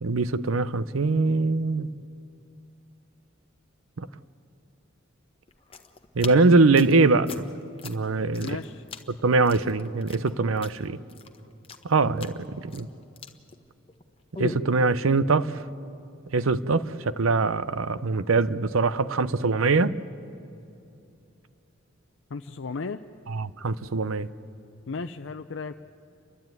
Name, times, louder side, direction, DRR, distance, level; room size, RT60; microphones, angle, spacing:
voice 1, 0.0-1.9 4.0-4.1 6.2-7.4 7.8-8.5 9.1-11.0 11.8-12.9 14.4-15.5 16.3-19.9 23.3-24.3, right 3 dB, 85° right, 15 dB, 0.7 m, -23 dB
sound 1, 5.5-14.0 14.3-14.7, left 3 dB, 30° left, 1.1 m, -40 dB
voice 2, 8.4-8.8 22.3-23.0 24.9-25.8, left 4 dB, 65° left, 7 dB, 0.5 m, -35 dB
30.0 x 12.0 x 9.2 m, 2.6 s
head